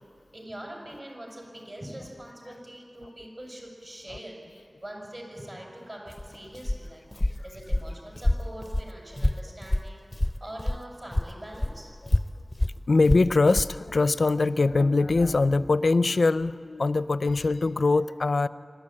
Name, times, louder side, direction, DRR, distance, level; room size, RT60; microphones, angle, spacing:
voice 1, 0.3-11.9, right 1 dB, 45° right, -1 dB, 6.4 m, -43 dB
Walk footsteps, 6.1-10.9 11.1-13.8, left 1 dB, 20° left, 0.5 m, -28 dB
voice 2, 12.9-18.5, left 3 dB, 85° left, 15 dB, 0.5 m, -23 dB
26.0 x 12.5 x 8.9 m, 2.5 s
wide cardioid pair, 60°, 0 cm